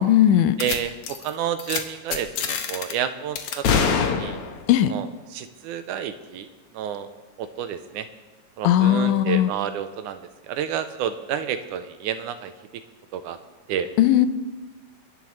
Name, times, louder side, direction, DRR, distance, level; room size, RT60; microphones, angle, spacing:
voice 1, 0.0-0.6 4.7-5.0 8.6-9.5 14.0-14.3, left 11 dB, 80° left, 12 dB, 2.1 m, -18 dB
sound 1, 0.6-0.8 1.0-1.3 1.6-1.8 2.1-2.9 3.4-4.7, left 6 dB, 60° left, 1.6 m, -24 dB
voice 2, 0.6-4.4 4.9-5.1 5.3-6.5 6.7-7.1 7.4-8.1 8.6-12.5 13.1-13.4 13.7-13.9, right 9 dB, 80° right, 10 dB, 2.1 m, -30 dB
29.0 x 11.0 x 3.2 m, 1.2 s
omnidirectional pair, 3.7 m